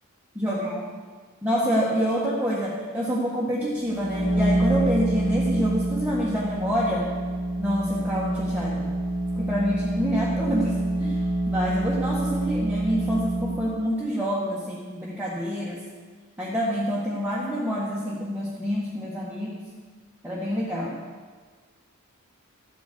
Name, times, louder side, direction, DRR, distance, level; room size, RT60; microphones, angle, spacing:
voice 1, 0.3-0.8 1.4-7.1 7.6-8.9 9.3-11.2 11.5-15.8 16.4-19.6 20.2-20.9, equal, 5° right, -6 dB, 1.6 m, -27 dB
sound 1, 3.8-13.7, right 1 dB, 60° left, 3.7 m, -26 dB
13.0 x 9.3 x 6.8 m, 1.5 s
head